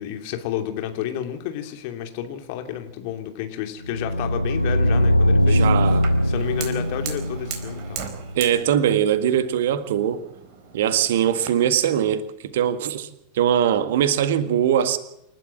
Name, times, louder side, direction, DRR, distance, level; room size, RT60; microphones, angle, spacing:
voice 1, 0.0-8.0, left 10 dB, 45° left, 2.8 m, -31 dB
sound 1, 3.8-8.8, equal, 90° left, 0.7 m, -21 dB
voice 2, 5.5-6.1 8.3-10.2 10.7-13.1 13.3-15.0, right 9 dB, 55° right, 1.8 m, -21 dB
Fire, 6.0-11.5, right 7 dB, 40° right, 4.1 m, -39 dB
28.5 x 12.5 x 7.7 m
figure-of-eight pair, 90°, 0 cm